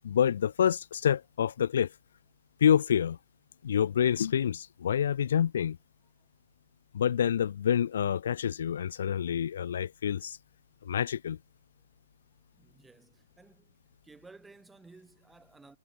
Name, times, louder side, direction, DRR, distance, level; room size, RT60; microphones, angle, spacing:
voice 1, 0.0-1.9 2.6-3.2 3.6-5.8 6.9-10.4 10.8-11.4, left 9 dB, 55° left, 0.6 m, -27 dB
voice 2, 12.5-13.8 14.0-15.8, right 3 dB, 5° right, 6.3 m, -55 dB
hypercardioid pair, 170°, 0 cm